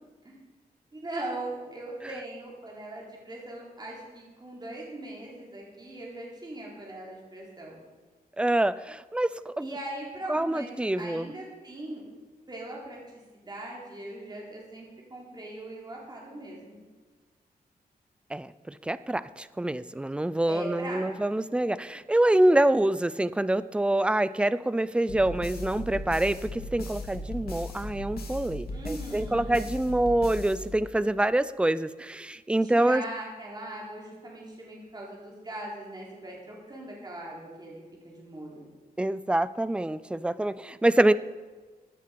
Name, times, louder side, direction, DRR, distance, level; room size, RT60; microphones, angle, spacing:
voice 1, 0.9-7.8 9.6-12.1 12.5-13.0 13.3-14.9 15.1-16.9 20.5-21.1 28.7-29.7 32.6-38.7, right 1 dB, 25° right, -3 dB, 3.9 m, -40 dB
voice 2, 8.4-9.7 10.3-11.3 18.3-33.0 39.0-41.1, right 1 dB, 5° right, 16 dB, 0.4 m, -26 dB
sound 1, 25.1-31.2, left 1 dB, 85° left, 2.3 m, -38 dB
15.5 x 9.8 x 5.2 m, 1.4 s
wide cardioid pair, 130°, 16 cm